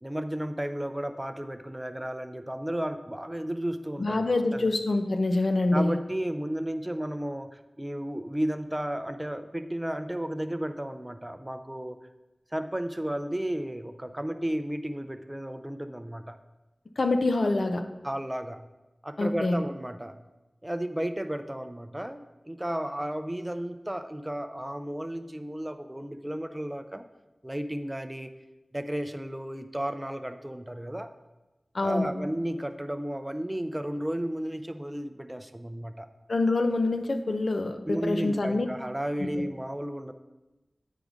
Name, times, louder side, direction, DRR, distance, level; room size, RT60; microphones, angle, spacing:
voice 1, 0.0-4.2 4.5-4.7 5.7-12.0 12.5-16.4 17.4-17.5 18.0-18.6 19.0-20.2 20.6-27.0 27.4-28.3 28.7-31.1 31.8-36.1 37.9-40.1, right 1 dB, 15° right, 9 dB, 0.5 m, -33 dB
voice 2, 4.0-6.0 17.0-17.8 19.2-19.6 31.7-32.1 36.3-38.7 39.2-39.3, left 2 dB, 75° left, 6 dB, 0.7 m, -26 dB
9.5 x 4.8 x 5.1 m, 1.1 s
wide cardioid pair, 70°, 0 cm